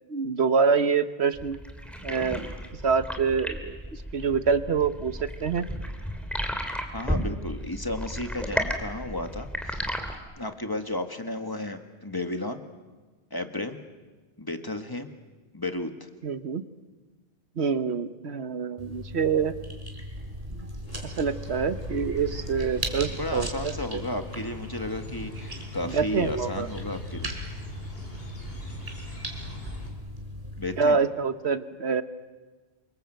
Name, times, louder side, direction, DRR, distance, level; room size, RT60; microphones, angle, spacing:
voice 1, 0.1-1.6 2.0-2.5 2.8-5.7 16.2-16.6 17.6-19.5 20.5-20.7 21.0-24.0 25.8-26.7 30.8-32.0, right 5 dB, 70° right, 11 dB, 1.4 m, -26 dB
sound 1, 1.3-10.2, equal, ahead, 2.6 m, -33 dB
voice 2, 6.9-9.9 10.4-12.6 13.3-13.8 14.4-15.1 15.5-16.1 23.1-27.3 30.6-31.0, left 1 dB, 20° left, 6 dB, 1.8 m, -33 dB
sound 2, 18.8-30.9, equal, 35° right, 4.0 m, -38 dB
sound 3, 20.9-29.9, left 1 dB, 60° left, 4.6 m, -41 dB
28.0 x 24.5 x 7.8 m, 1.3 s
omnidirectional pair, 1.1 m